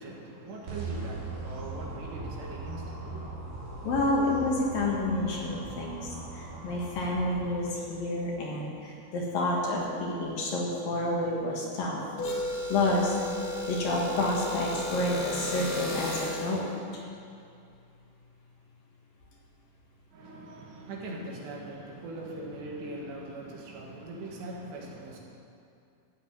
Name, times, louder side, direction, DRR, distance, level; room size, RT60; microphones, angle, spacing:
voice 1, 0.0-3.3 20.1-25.2, right 2 dB, 75° right, -1 dB, 3.9 m, -41 dB
sound 1, 0.7-7.5, right 3 dB, 50° right, 3.5 m, -39 dB
voice 2, 3.8-12.4 12.7-13.1 13.7-17.0, left 2 dB, 60° left, -3 dB, 3.0 m, -29 dB
sound 2, 12.2-16.6, left 1 dB, 90° left, 4.6 m, -34 dB
13.5 x 8.0 x 8.9 m, 2.5 s
omnidirectional pair, 5.1 m